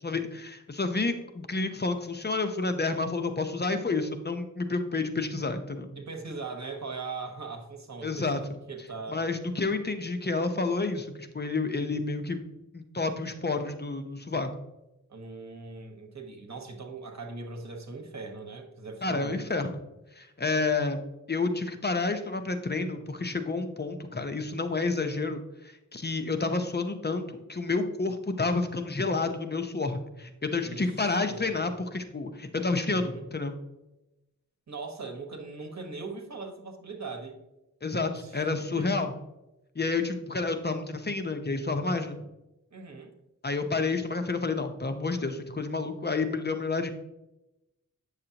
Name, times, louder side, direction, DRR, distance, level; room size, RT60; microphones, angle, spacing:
voice 1, 0.0-5.9 8.0-8.4 9.1-12.4 12.7-14.5 19.0-19.8 20.2-21.0 21.3-33.6 37.8-39.1 39.8-42.2 43.4-46.9, left 3 dB, 30° left, 7 dB, 0.8 m, -30 dB
voice 2, 5.9-9.2 15.1-19.4 30.6-30.8 31.3-31.6 32.9-33.2 34.7-37.4 38.1-38.5 38.8-38.9 41.9-42.2 42.7-43.1, right 4 dB, 60° right, 4 dB, 1.4 m, -40 dB
8.6 x 6.6 x 2.9 m, 0.93 s
wide cardioid pair, 75°, 32 cm